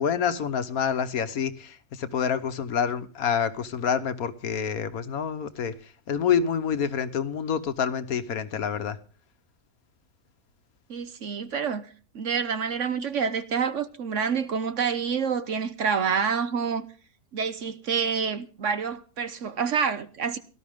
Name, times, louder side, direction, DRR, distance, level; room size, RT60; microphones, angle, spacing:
voice 1, 0.0-9.0, left 7 dB, 65° left, 1.4 m, -27 dB
voice 2, 10.9-11.9 12.1-16.9 17.3-20.4, right 6 dB, 55° right, 1.1 m, -27 dB
18.0 x 12.0 x 3.5 m
omnidirectional pair, 1.7 m